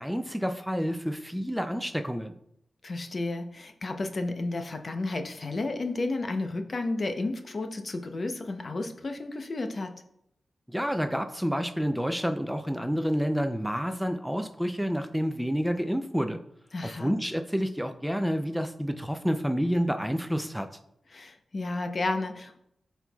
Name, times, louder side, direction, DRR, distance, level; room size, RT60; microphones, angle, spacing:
voice 1, 0.0-2.3 10.7-16.4 16.8-20.7, equal, ahead, 7 dB, 0.4 m, -29 dB
voice 2, 2.8-9.9 16.7-17.1 21.1-22.6, left 2 dB, 45° left, 6 dB, 0.7 m, -32 dB
12.0 x 4.5 x 2.3 m, 0.76 s
cardioid pair, 70°, 0 cm